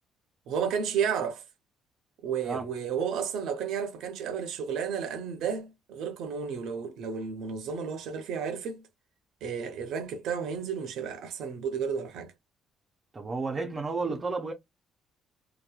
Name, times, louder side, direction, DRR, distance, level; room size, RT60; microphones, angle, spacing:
voice 1, 0.5-1.4 2.2-8.8 9.4-12.3 14.1-14.2, right 7 dB, 70° right, 0.6 m, -32 dB
voice 2, 13.1-14.5, right 3 dB, 25° right, 0.5 m, -32 dB
2.8 x 2.1 x 2.4 m
cardioid pair, 150°, 0 cm